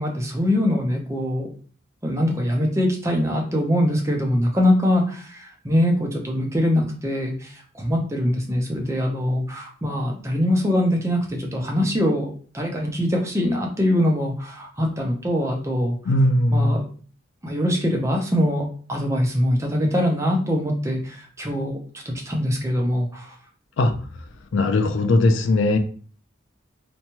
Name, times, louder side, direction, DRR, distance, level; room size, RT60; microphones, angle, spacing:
voice 1, 0.0-1.5 2.0-16.0 16.5-16.8 17.4-23.3, left 1 dB, 15° right, 0 dB, 0.5 m, -23 dB
voice 2, 16.1-16.7 23.8-23.9 24.5-25.8, left 2 dB, 65° left, 7 dB, 0.4 m, -19 dB
2.9 x 2.2 x 2.8 m, 0.42 s
head